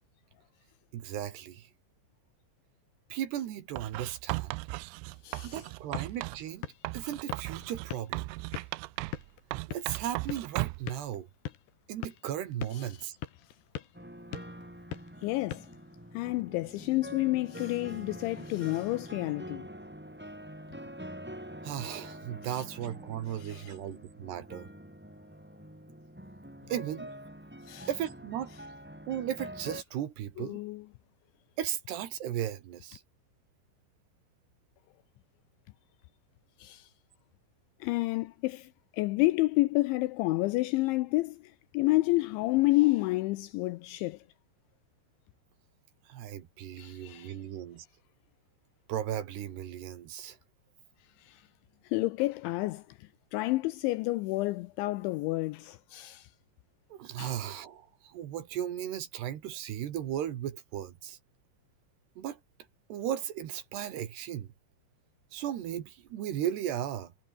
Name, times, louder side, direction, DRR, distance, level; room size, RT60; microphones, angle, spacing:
voice 1, 0.9-1.7 3.1-4.6 5.4-6.7 6.9-8.3 9.7-11.3 11.9-13.2 21.6-24.7 26.7-27.2 27.9-28.5 29.1-30.6 31.6-33.0 46.1-47.9 48.9-50.4 56.9-61.2 62.2-62.4 62.9-64.5 65.3-67.1, right 11 dB, 60° right, 3.4 m, -36 dB
Writing, 3.8-6.4 6.8-9.3 9.5-10.9, right 23 dB, 85° right, 3.0 m, -37 dB
voice 2, 5.2-5.6 12.7-13.1 15.2-15.7 16.1-19.7 22.5-22.6 23.4-23.8 27.6-27.9 30.4-30.8 36.6-36.9 37.8-44.2 46.8-47.4 51.2-51.5 51.8-56.3 57.2-57.4, left 20 dB, 90° left, 2.7 m, -30 dB
sound 1, 5.6-16.4, left 12 dB, 60° left, 3.5 m, -45 dB
sound 2, 13.9-29.8, equal, 5° right, 1.5 m, -46 dB
omnidirectional pair, 6.0 m